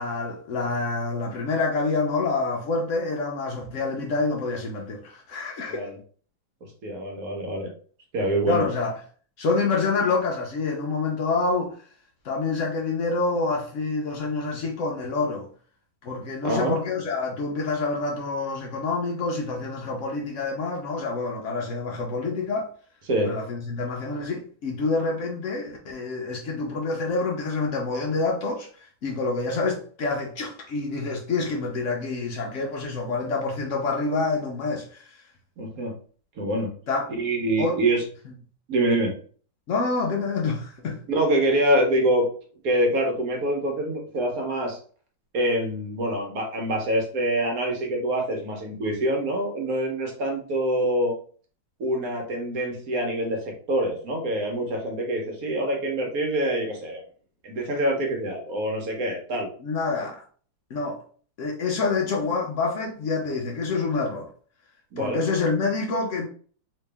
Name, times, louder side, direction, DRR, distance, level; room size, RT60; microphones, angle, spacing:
voice 1, 0.0-5.9 8.5-8.9 9.4-11.8 12.2-15.5 16.0-22.7 23.2-35.1 36.9-37.1 37.6-37.8 39.7-41.0 59.6-60.2 60.7-61.0 61.4-64.3 65.0-66.3, left 3 dB, 85° left, 0.6 m, -27 dB
voice 2, 5.7-6.0 6.8-7.7 8.1-8.6 16.4-16.8 23.1-23.3 35.6-36.0 36.4-36.7 37.2-38.0 38.7-39.1 41.1-42.3 42.6-44.8 45.3-51.2 51.8-57.0 57.4-59.5 64.9-65.2, right 1 dB, 55° right, 1.2 m, -25 dB
3.1 x 2.8 x 3.3 m
omnidirectional pair, 2.1 m